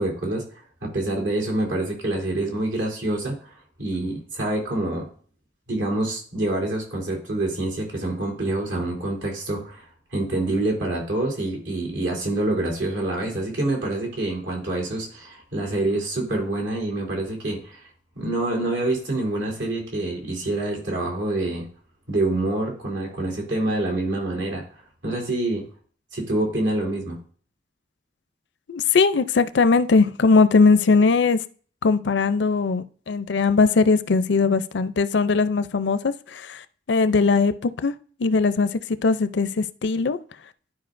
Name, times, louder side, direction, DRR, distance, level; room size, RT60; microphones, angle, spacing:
voice 1, 0.0-5.1 5.7-17.9 18.1-21.7 22.1-25.6 26.1-27.2, right 2 dB, 85° right, 3.1 m, -26 dB
voice 2, 28.7-31.4 31.8-37.9 38.2-40.2, left 4 dB, 70° left, 0.5 m, -20 dB
11.5 x 5.0 x 2.6 m
head